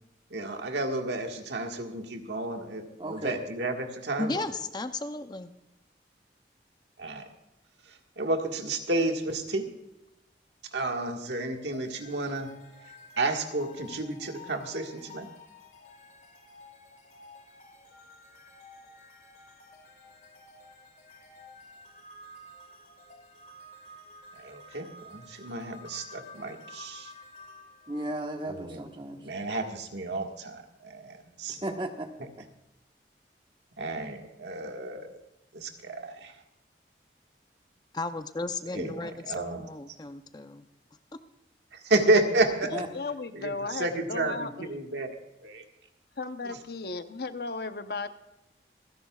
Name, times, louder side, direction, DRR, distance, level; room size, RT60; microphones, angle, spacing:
voice 1, 0.3-4.5 7.0-7.2 8.2-9.6 10.7-12.5 13.2-15.3 24.4-27.1 28.5-28.9 29.2-31.7 32.2-32.3 33.8-35.1 35.5-36.3 38.7-39.7 41.7-42.7 43.3-45.1 45.4-45.6 46.4-46.6, right 2 dB, 85° right, 3 dB, 1.7 m, -31 dB
voice 2, 3.0-3.4 27.9-29.2 31.6-32.1 42.7-42.9, right 1 dB, 30° right, 4 dB, 1.3 m, -34 dB
voice 3, 4.2-5.5 37.9-40.6, left 3 dB, 25° left, 9 dB, 0.5 m, -34 dB
sound 1, 11.7-28.9, left 2 dB, 45° left, 1.9 m, -51 dB
voice 4, 42.6-44.7 46.2-48.1, left 3 dB, 60° left, 9 dB, 0.8 m, -35 dB
27.0 x 10.5 x 2.4 m, 0.92 s
head